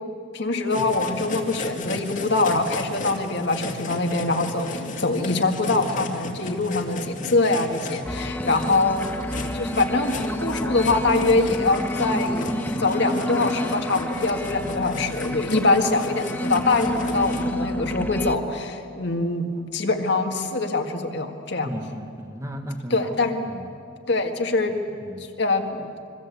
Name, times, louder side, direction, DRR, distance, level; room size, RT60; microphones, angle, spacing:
voice 1, 0.3-9.1 9.5-21.7 22.9-23.4 24.1-24.8 25.4-26.0, left 3 dB, 55° left, 4 dB, 1.9 m, -24 dB
sound 1, 0.7-17.4, left 2 dB, 40° left, 2.2 m, -36 dB
voice 2, 6.3-6.8 12.7-12.9 21.6-23.7 24.9-25.3, equal, 15° right, 5 dB, 1.5 m, -36 dB
sound 2, 8.0-18.3, equal, 10° left, 0.9 m, -29 dB
26.0 x 24.0 x 8.4 m, 2.5 s
head